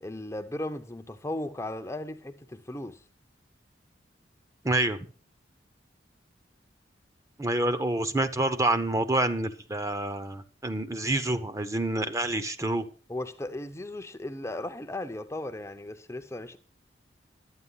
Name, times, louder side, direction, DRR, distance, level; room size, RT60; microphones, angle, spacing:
voice 1, 0.0-3.0 13.1-16.6, left 1 dB, 15° left, 0.6 m, -36 dB
voice 2, 4.6-5.0 7.4-12.8, right 2 dB, 15° right, 0.7 m, -27 dB
11.5 x 8.8 x 5.5 m
head